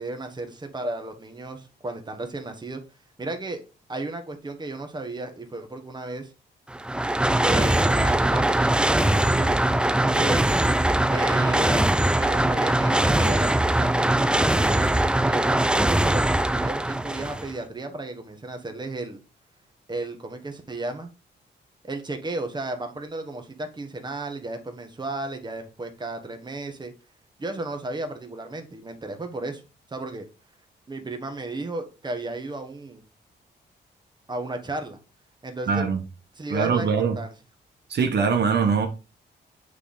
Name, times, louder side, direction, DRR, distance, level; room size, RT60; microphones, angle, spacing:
voice 1, 0.0-2.8 3.2-3.6 3.9-6.3 7.4-9.5 10.0-10.4 11.1-16.2 16.5-19.2 19.9-21.1 21.8-26.9 27.4-29.6 29.9-30.2 30.9-33.0 34.3-35.0 35.4-35.8 36.3-37.3, right 2 dB, 25° right, 1.5 m, -34 dB
sound 1, 6.7-17.5, right 1 dB, 5° right, 0.4 m, -21 dB
voice 2, 35.7-36.0 36.5-37.2 37.9-38.9, right 6 dB, 65° right, 1.2 m, -22 dB
8.2 x 3.4 x 4.1 m
cardioid pair, 75°, 19 cm